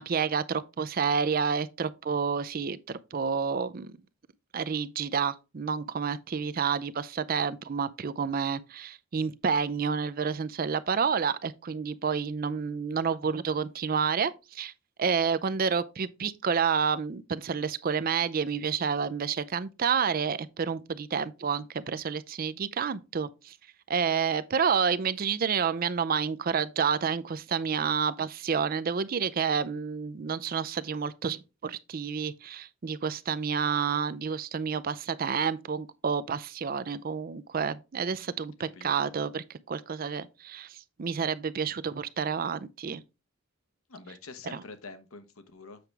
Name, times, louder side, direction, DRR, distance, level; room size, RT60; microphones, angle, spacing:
voice 1, 0.0-4.0 4.5-14.7 15.0-23.6 23.9-43.0 44.5-44.6, right 6 dB, 45° right, 0.4 m, -29 dB
voice 2, 38.1-39.1 43.9-45.8, left 3 dB, 85° left, 1.0 m, -47 dB
7.7 x 5.9 x 3.3 m
head